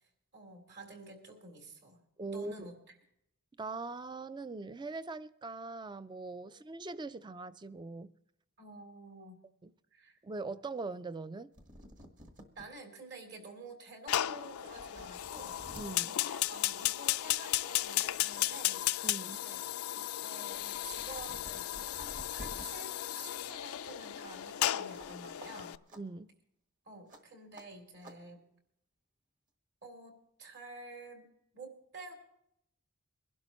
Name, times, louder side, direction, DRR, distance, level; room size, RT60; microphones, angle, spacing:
voice 1, 0.3-2.0 2.2-3.0 6.4-6.6 8.6-9.4 9.9-10.2 12.5-15.6 16.1-18.8 19.3-19.6 19.9-25.7 26.8-28.4 29.8-31.3 31.5-32.1, right 2 dB, 55° right, 3.1 m, -50 dB
voice 2, 2.2-2.7 3.6-8.1 9.6-9.7 10.2-11.5 15.8-16.1 19.0-19.4 26.0-26.3, right 3 dB, 20° right, 0.4 m, -41 dB
sound 1, 11.3-11.4 11.5-12.7 13.2-13.3 14.1-14.2 14.6-15.9 17.1-17.3 17.7-18.8 19.1-22.6 24.9-25.1 25.4-25.5 25.9-26.0 27.1-27.2 27.5-27.7 28.0-28.2, equal, 40° right, 1.5 m, -52 dB
Fire, 14.1-25.8, left 13 dB, 85° left, 0.4 m, -35 dB
22.5 x 12.0 x 3.0 m
head